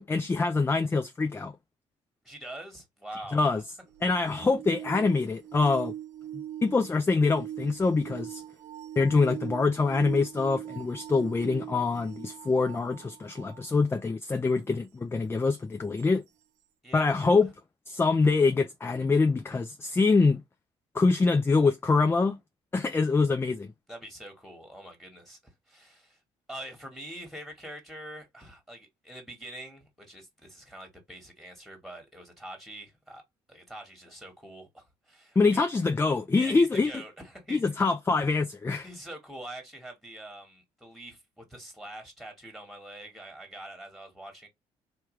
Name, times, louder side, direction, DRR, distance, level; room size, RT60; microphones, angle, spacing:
voice 1, 0.0-1.5 3.3-3.6 4.0-5.9 6.6-8.4 9.0-16.2 16.9-17.5 17.9-20.4 20.9-22.4 22.7-23.7 35.4-36.9 37.5-38.9, left 4 dB, 20° left, 0.4 m, -25 dB
voice 2, 2.2-3.4 16.8-17.2 23.9-26.2 26.5-33.2 33.5-35.6 36.3-37.6 38.8-44.5, right 1 dB, ahead, 1.5 m, -44 dB
sound 1, 3.9-13.7 16.0-16.1, right 11 dB, 80° right, 0.6 m, -41 dB
3.1 x 2.3 x 3.1 m
supercardioid pair, 70°, 13 cm